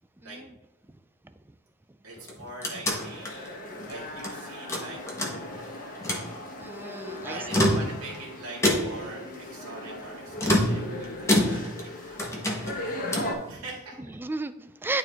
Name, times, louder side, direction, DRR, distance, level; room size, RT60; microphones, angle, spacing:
voice 1, 0.2-0.5 2.4-2.5 6.6-7.5 10.4-10.6 14.0-15.0, right 2 dB, 10° right, 11 dB, 0.3 m, -34 dB
voice 2, 2.0-5.0 5.7-5.9 6.8-6.9 7.3-9.2 9.5-12.3 12.9-14.0 14.9-15.0, right 2 dB, 65° right, -5 dB, 2.2 m, -43 dB
sound 1, 2.2-4.3 4.7-5.7 6.0-6.3 7.3-8.2 8.6-9.1 10.4-11.9 12.2-13.4, left 1 dB, 15° left, 1.3 m, -27 dB
sound 2, 2.9-13.3, left 1 dB, 40° left, 1.3 m, -38 dB
11.0 x 4.4 x 3.6 m, 0.93 s
head